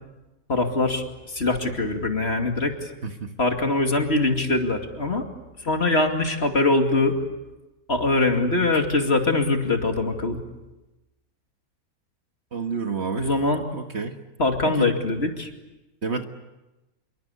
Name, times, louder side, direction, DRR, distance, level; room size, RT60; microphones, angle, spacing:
voice 1, 0.5-1.0 1.3-2.9 3.4-5.2 5.6-7.1 7.9-10.4 13.2-13.6 14.4-15.5, left 2 dB, 45° left, 4 dB, 2.7 m, -22 dB
voice 2, 3.0-3.3 12.5-13.3 13.7-14.2 14.7-14.9 16.0-16.2, right 5 dB, 45° right, 6 dB, 1.8 m, -29 dB
27.0 x 23.0 x 8.3 m, 1.0 s
omnidirectional pair, 1.6 m